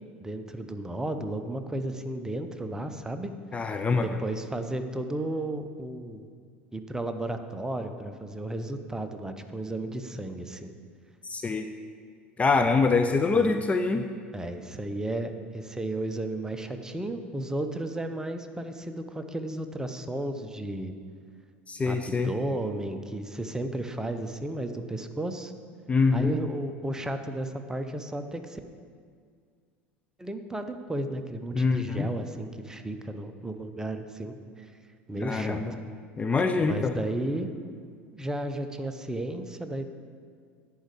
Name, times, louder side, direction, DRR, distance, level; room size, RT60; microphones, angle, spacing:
voice 1, 0.2-3.3 3.6-6.3 6.7-10.7 13.3-13.5 14.3-21.0 21.9-25.5 26.1-28.6 30.2-34.7 35.1-35.6 36.6-37.5 38.1-39.8, right 1 dB, 10° right, 7 dB, 0.8 m, -33 dB
voice 2, 3.5-4.1 11.2-11.7 12.4-14.0 21.7-22.3 25.9-26.3 31.5-32.1 35.2-35.7 36.2-37.0, left 4 dB, 20° left, 7 dB, 0.5 m, -25 dB
10.0 x 5.0 x 8.2 m, 2.1 s
hypercardioid pair, 80°, 6 cm